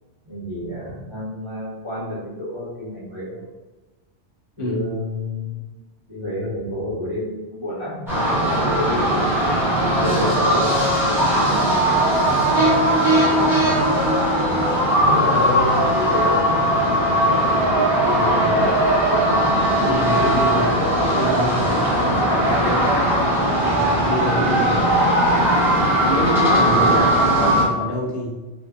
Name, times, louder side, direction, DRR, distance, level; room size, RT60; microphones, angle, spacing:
voice 1, 0.3-3.5 4.6-5.6 6.1-9.2 9.8-12.0 12.2-13.8 15.0-16.7 17.0-17.5 18.0-18.7 24.6-24.8, left 1 dB, 30° right, -11 dB, 0.8 m, -29 dB
sound 1, 8.1-27.6, right 1 dB, ahead, 0.6 m, -19 dB
voice 2, 19.8-23.1 23.6-25.3 25.7-28.4, equal, 55° left, -3 dB, 0.7 m, -26 dB
2.7 x 2.1 x 2.3 m, 1.2 s
omnidirectional pair, 1.2 m